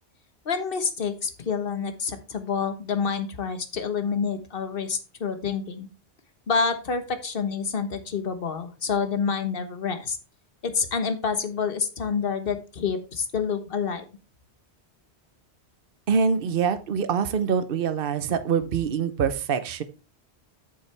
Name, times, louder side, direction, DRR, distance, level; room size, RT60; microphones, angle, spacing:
voice 1, 0.4-5.9 6.5-10.2 10.6-14.1, left 5 dB, 55° left, 9 dB, 1.4 m, -28 dB
voice 2, 16.1-19.8, right 6 dB, 55° right, 11 dB, 1.0 m, -24 dB
8.5 x 7.1 x 3.4 m, 0.32 s
omnidirectional pair, 1.2 m